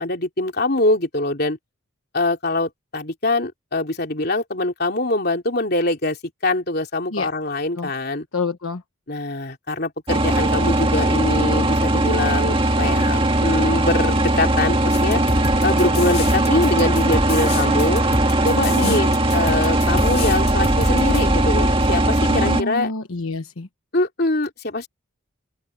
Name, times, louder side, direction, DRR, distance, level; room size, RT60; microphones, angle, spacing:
voice 1, 0.0-1.6 2.1-6.2 6.4-8.3 9.1-15.2 15.6-18.0 18.4-22.9 23.9-24.9, left 2 dB, 45° left, 3.4 m, -23 dB
voice 2, 8.3-8.8 18.8-19.0 22.3-23.7, left 3 dB, 80° left, 1.2 m, -27 dB
sound 1, 10.1-22.6, right 1 dB, 25° right, 2.0 m, -19 dB
sound 2, 14.9-21.2, left 2 dB, 30° left, 3.1 m, -29 dB
open air
head